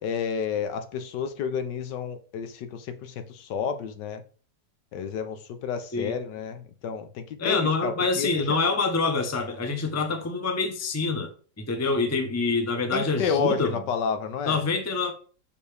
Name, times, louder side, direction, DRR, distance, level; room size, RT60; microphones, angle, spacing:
voice 1, 0.0-4.2 4.9-8.6 12.9-14.6, left 6 dB, 75° left, 1.4 m, -30 dB
voice 2, 7.4-11.3 11.6-13.8 14.4-15.1, left 3 dB, 15° left, 0.6 m, -26 dB
6.6 x 5.4 x 3.4 m
omnidirectional pair, 1.9 m